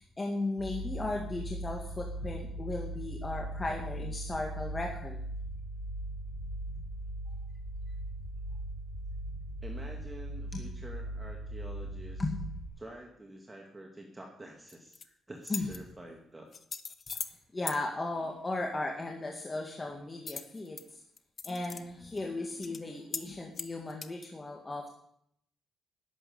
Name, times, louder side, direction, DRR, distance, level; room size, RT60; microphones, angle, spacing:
voice 1, 0.0-5.2 10.5-10.6 12.2-12.5 15.5-15.7 17.1-17.2 17.5-21.0 21.4-24.9, left 2 dB, 25° left, 1 dB, 2.0 m, -36 dB
sound 1, 0.6-12.7, right 1 dB, 85° left, 6.3 m, -39 dB
voice 2, 9.6-12.3 12.8-16.5, right 1 dB, 15° right, 1 dB, 2.1 m, -48 dB
sound 2, 14.7-15.0 15.4-15.8 16.5-17.4 17.7-17.8 20.3-20.8 21.2-21.8 22.2-22.3 22.6-22.8 23.1-23.3 23.5-24.3, left 5 dB, 40° left, 0.9 m, -39 dB
11.5 x 7.8 x 9.5 m, 0.70 s
cardioid pair, 90°, 0 cm